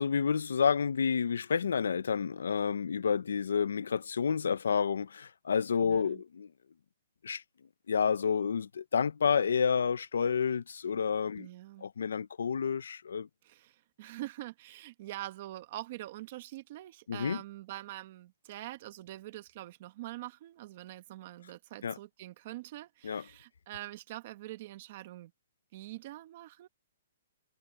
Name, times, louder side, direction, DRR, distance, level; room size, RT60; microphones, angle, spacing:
voice 1, 0.0-6.5 7.2-7.4 7.9-11.5 11.8-13.3 17.1-17.4 21.8-22.0 23.0-23.2, left 6 dB, 85° left, 0.6 m, -29 dB
voice 2, 5.9-6.2 11.4-11.9 13.4-25.3 25.7-26.7, right 15 dB, 35° right, 1.3 m, -44 dB
hypercardioid pair, 175°, 0 cm